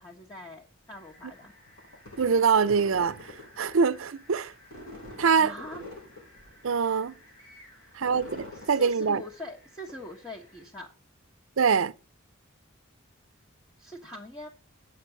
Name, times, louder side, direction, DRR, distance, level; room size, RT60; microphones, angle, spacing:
voice 1, 0.0-1.5 5.3-5.8 7.7-7.9 8.5-10.9 13.8-14.5, left 1 dB, 15° left, 1.2 m, -42 dB
sound 1, 0.9-10.7, left 2 dB, 90° left, 6.5 m, -47 dB
voice 2, 2.2-3.2 3.6-4.5 5.2-5.5 6.6-7.1 8.0-9.2 11.6-11.9, right 6 dB, 65° right, 0.5 m, -24 dB
8.4 x 6.0 x 6.9 m
head